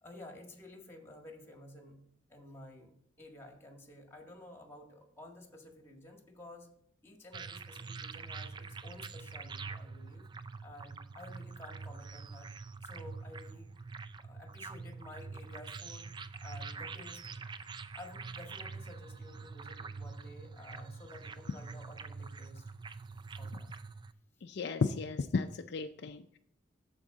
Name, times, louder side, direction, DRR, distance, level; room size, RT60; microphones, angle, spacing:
voice 1, 0.0-2.0 2.3-2.9 3.2-6.7 7.0-12.5 12.8-13.9 14.2-16.1 16.4-17.2 18.0-22.6 23.4-23.7, left 1 dB, 15° left, 2 dB, 1.8 m, -52 dB
sound 1, 7.3-24.1, right 4 dB, 25° right, 0.3 m, -45 dB
voice 2, 24.4-26.4, left 4 dB, 60° left, 7 dB, 0.4 m, -34 dB
13.5 x 4.6 x 3.9 m, 0.70 s
head